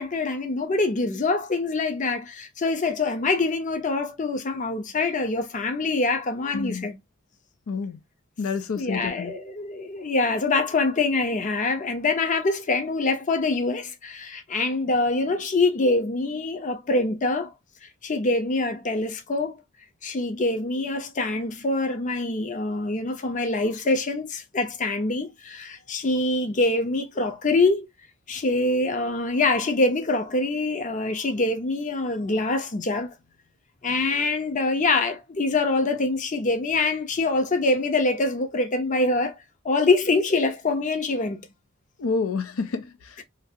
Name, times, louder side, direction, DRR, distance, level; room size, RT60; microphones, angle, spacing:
voice 1, 0.0-7.0 8.8-17.5 18.0-19.6 20.0-27.9 28.3-33.1 33.8-39.4 39.6-41.5 43.2-43.3, left 3 dB, 35° left, 0.6 m, -25 dB
voice 2, 6.5-6.9 7.7-8.0 8.4-9.3 42.0-43.2, left 4 dB, 80° left, 0.5 m, -29 dB
3.3 x 2.4 x 2.6 m
head